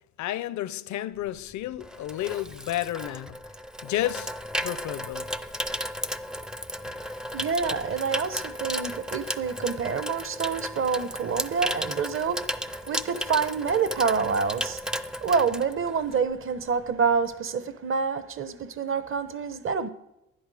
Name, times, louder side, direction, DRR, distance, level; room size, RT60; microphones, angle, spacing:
voice 1, 0.2-3.4 3.8-4.3 4.6-5.3, left 13 dB, 70° left, 0.6 m, -31 dB
Water tap faucet / Sink (filling or washing), 1.3-16.3 16.6-16.9, equal, ahead, 0.4 m, -34 dB
voice 2, 7.3-14.8 15.2-19.9, right 5 dB, 45° right, 1.0 m, -27 dB
12.0 x 10.0 x 4.9 m
cardioid pair, 90°, 30 cm